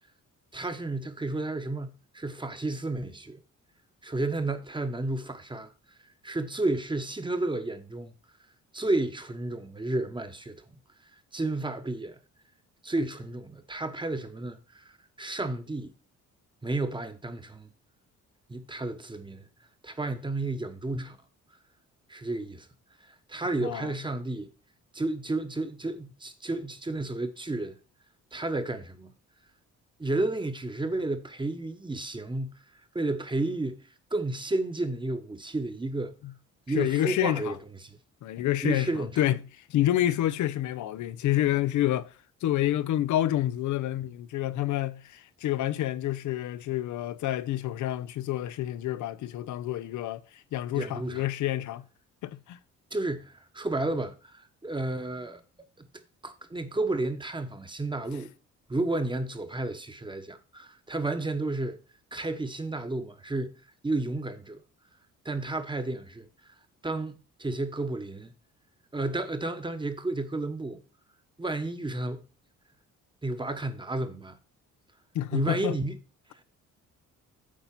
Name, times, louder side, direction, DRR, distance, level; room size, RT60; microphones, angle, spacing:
voice 1, 0.5-3.4 4.0-5.7 6.2-8.1 8.7-10.6 11.3-12.2 12.8-14.8 15.2-15.9 16.6-17.7 18.5-19.4 19.8-21.2 22.1-22.7 23.3-24.5 24.9-27.8 28.3-29.1 30.0-32.6 32.9-33.8 34.1-36.1 36.7-37.5 37.8-38.0 38.6-39.1 50.7-51.2 52.9-55.4 55.8-55.9 56.2-58.3 58.7-61.8 62.1-64.6 65.2-66.3 66.8-68.3 68.9-70.8 71.4-72.2 73.2-74.4 75.3-76.0, right 2 dB, 15° right, 1.1 m, -32 dB
voice 2, 23.6-23.9 36.7-37.6 38.2-42.1 42.4-51.9 52.2-52.6 75.1-75.8, left 13 dB, 75° left, 0.6 m, -28 dB
8.6 x 4.0 x 5.8 m
cardioid pair, 90°, 30 cm